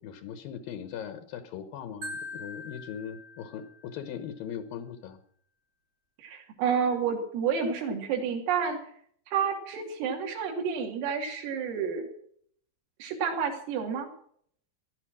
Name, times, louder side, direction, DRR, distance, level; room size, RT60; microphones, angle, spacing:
voice 1, 0.0-5.2, left 8 dB, 80° left, 9 dB, 2.0 m, -39 dB
Marimba xylophone, 2.0-4.1, left 2 dB, 55° right, 1.9 m, -42 dB
voice 2, 6.2-8.8 9.3-12.1 13.0-14.1, right 6 dB, 80° right, 2 dB, 5.5 m, -29 dB
17.5 x 11.5 x 6.2 m, 0.62 s
omnidirectional pair, 5.8 m